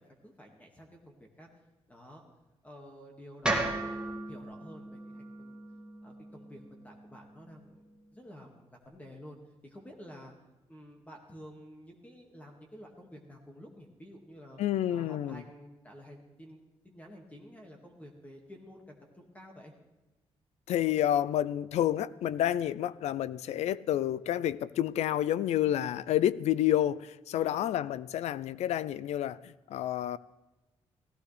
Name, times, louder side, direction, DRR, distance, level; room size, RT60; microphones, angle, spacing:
voice 1, 0.0-1.5 1.9-2.2 2.6-5.6 6.0-7.8 8.1-9.4 9.6-10.3 10.7-14.6 14.9-16.6 16.8-19.7 27.3-27.6, equal, 15° left, 1 dB, 2.0 m, -51 dB
sound 1, 3.4-7.6, right 2 dB, 10° right, 2.2 m, -36 dB
voice 2, 14.6-15.4 20.7-30.2, left 11 dB, 90° left, 18 dB, 0.4 m, -29 dB
17.5 x 15.5 x 3.4 m, 1.1 s
cardioid pair, 115°, 11 cm